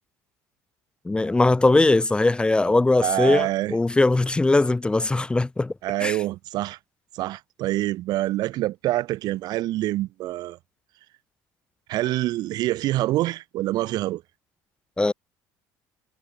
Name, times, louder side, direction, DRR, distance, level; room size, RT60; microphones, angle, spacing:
voice 1, 1.0-5.7 6.0-6.2 15.0-15.1, left 2 dB, 15° left, 0.9 m, -20 dB
voice 2, 3.0-3.8 5.8-6.8 7.1-10.6 11.9-14.2, right 16 dB, 65° right, 1.5 m, -26 dB
supercardioid pair, 95°, 7 cm